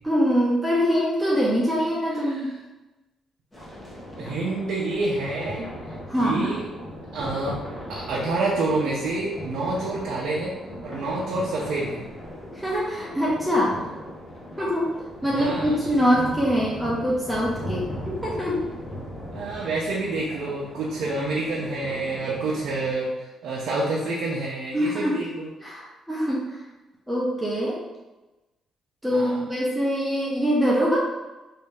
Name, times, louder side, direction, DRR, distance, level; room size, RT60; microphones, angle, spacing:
voice 1, 0.0-2.5 6.1-6.6 12.5-13.8 14.6-14.9 15.2-18.7 24.7-25.2 25.6-26.6 27.1-27.8 29.0-31.0, equal, 5° right, -6 dB, 0.9 m, -24 dB
sound 1, 3.5-22.9, equal, 20° left, 1.0 m, -38 dB
voice 2, 4.2-5.7 6.2-6.7 7.1-7.6 7.9-10.5 10.8-12.0 15.2-15.8 19.3-25.5 29.1-29.5, right 2 dB, 75° right, -5 dB, 0.6 m, -28 dB
3.0 x 2.8 x 3.5 m, 1.1 s
cardioid pair, 90°, 0 cm